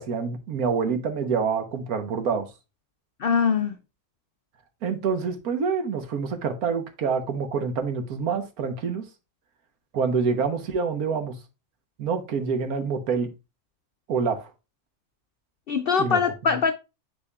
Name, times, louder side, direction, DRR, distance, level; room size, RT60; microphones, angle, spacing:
voice 1, 0.0-2.5 4.8-9.0 9.9-11.3 12.0-13.3 14.1-14.5 16.0-16.2, right 5 dB, 80° right, 1.5 m, -26 dB
voice 2, 3.2-3.8 15.7-16.7, left 6 dB, 80° left, 0.5 m, -22 dB
9.7 x 4.2 x 2.3 m
omnidirectional pair, 1.6 m